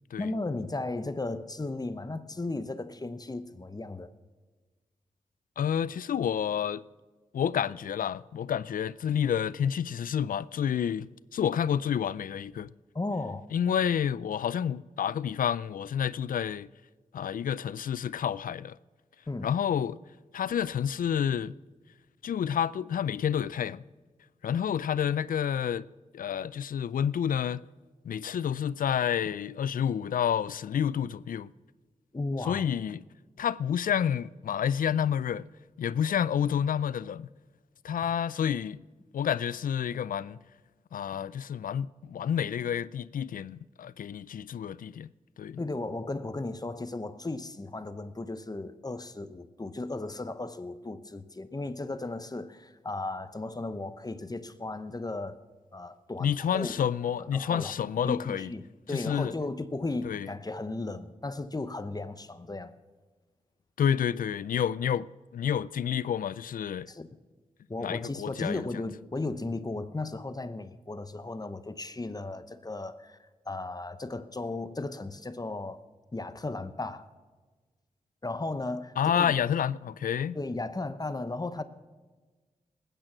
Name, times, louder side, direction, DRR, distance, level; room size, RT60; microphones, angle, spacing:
voice 1, 0.2-4.1 12.9-13.4 19.3-19.5 32.1-32.6 45.6-55.4 55.7-56.7 57.2-57.7 58.0-62.7 66.9-67.1 67.7-75.8 76.1-77.1 78.2-79.3 80.3-81.6, left 2 dB, 25° left, 0.9 m, -35 dB
voice 2, 5.6-6.8 7.3-12.7 13.5-16.7 17.1-18.8 19.4-20.0 20.3-21.5 22.2-23.8 24.4-25.9 26.1-27.6 28.0-31.5 32.5-33.0 33.4-35.5 35.8-37.3 37.8-38.8 39.1-40.4 40.9-45.1 45.4-45.6 56.2-58.5 58.9-59.3 60.0-60.3 63.8-66.9 67.8-68.7 79.0-80.4, left 8 dB, 80° left, 0.4 m, -29 dB
20.0 x 9.0 x 6.1 m
cardioid pair, 55°, 14 cm